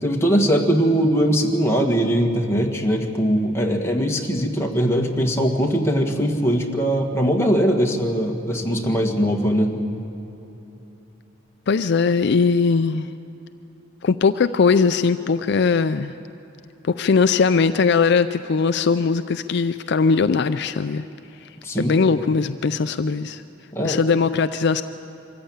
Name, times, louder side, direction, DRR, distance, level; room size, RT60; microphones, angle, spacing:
voice 1, 0.0-9.7 21.6-21.9 23.7-24.0, equal, 15° left, 0 dB, 1.7 m, -21 dB
voice 2, 11.7-13.1 14.0-16.1 16.8-21.0 21.8-23.4 23.8-24.8, left 5 dB, 60° left, 11 dB, 0.4 m, -20 dB
24.5 x 14.5 x 8.8 m, 2.9 s
head